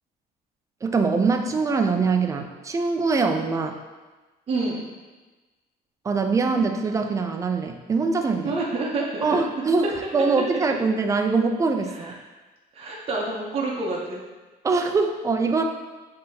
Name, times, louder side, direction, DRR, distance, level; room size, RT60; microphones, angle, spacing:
voice 1, 0.8-3.8 6.0-8.6 9.2-12.1 14.6-15.6, right 4 dB, 20° right, 5 dB, 0.4 m, -23 dB
voice 2, 4.5-4.8 8.4-9.4 11.9-12.1 12.7-14.2, right 3 dB, 35° right, -4 dB, 0.7 m, -28 dB
5.5 x 2.8 x 2.7 m, 1.2 s
cardioid pair, 110°, 17 cm